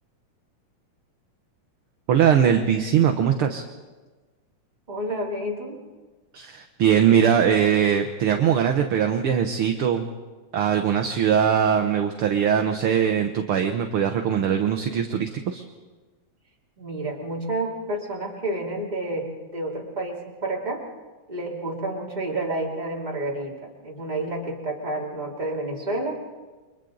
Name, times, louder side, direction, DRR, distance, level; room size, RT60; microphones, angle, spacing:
voice 1, 2.1-3.6 6.3-10.1 10.5-15.6, right 8 dB, 65° right, 5 dB, 1.4 m, -21 dB
voice 2, 4.9-5.8 16.8-20.8 21.3-26.2, right 1 dB, 15° right, -3 dB, 2.8 m, -30 dB
29.5 x 24.0 x 3.9 m, 1.3 s
omnidirectional pair, 3.5 m